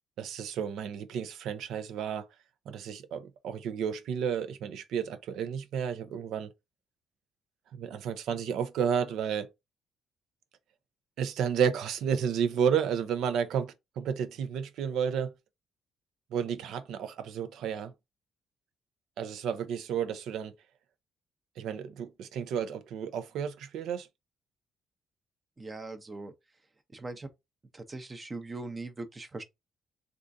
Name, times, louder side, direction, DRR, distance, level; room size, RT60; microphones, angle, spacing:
voice 1, 0.2-2.3 2.7-6.5 7.8-9.5 11.2-15.3 16.3-17.9 19.2-20.5 21.6-24.1, right 7 dB, 80° right, 0.5 m, -31 dB
voice 2, 25.6-26.3 26.9-27.3 27.7-29.4, right 3 dB, 25° right, 0.6 m, -40 dB
3.6 x 2.4 x 2.6 m
cardioid pair, 90°, 0 cm